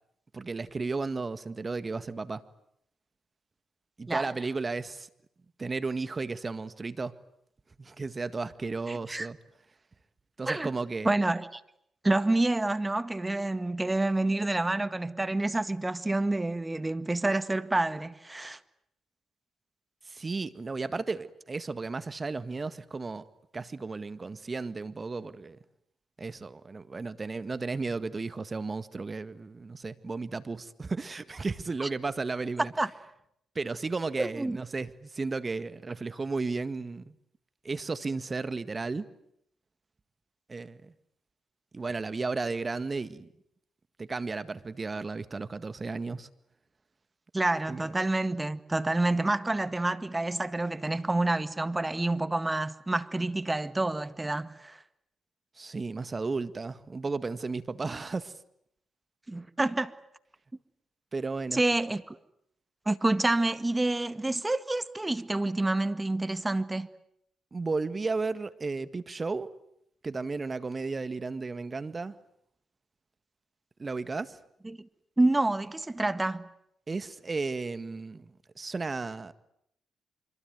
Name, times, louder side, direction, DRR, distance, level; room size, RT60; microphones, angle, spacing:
voice 1, 0.3-2.4 4.0-5.1 5.6-7.2 7.8-9.4 10.4-11.1 20.0-23.3 23.5-25.6 26.2-32.7 33.6-37.2 37.6-39.1 40.5-40.9 41.7-43.3 44.0-46.3 47.7-48.0 55.6-58.3 61.1-61.6 67.5-69.5 70.0-72.2 73.8-74.4 76.9-79.3, right 3 dB, 35° right, 1.8 m, -34 dB
voice 2, 8.9-9.3 10.5-10.7 11.1-11.6 12.0-18.6 31.8-31.9 32.8-32.9 34.2-34.6 47.3-54.8 59.3-59.9 61.5-62.2 62.9-66.9 74.6-74.9 75.2-76.5, right 2 dB, 20° right, 1.8 m, -28 dB
25.5 x 24.0 x 9.4 m
hypercardioid pair, 50°, 0 cm